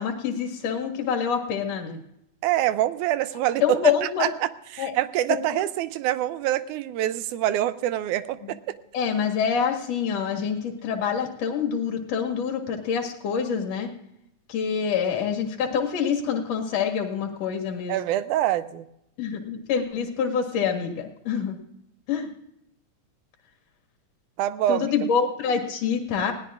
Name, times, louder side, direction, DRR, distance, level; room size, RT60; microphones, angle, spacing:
voice 1, 0.0-2.0 3.6-4.3 4.8-4.9 8.4-8.5 8.9-13.9 14.5-18.0 19.2-21.6 22.1-22.3 24.7-26.3, left 7 dB, 60° left, 4 dB, 2.8 m, -26 dB
voice 2, 2.4-8.8 17.9-18.9 24.4-24.9, right 13 dB, 85° right, 14 dB, 2.1 m, -25 dB
20.0 x 17.0 x 2.5 m, 0.80 s
omnidirectional pair, 3.5 m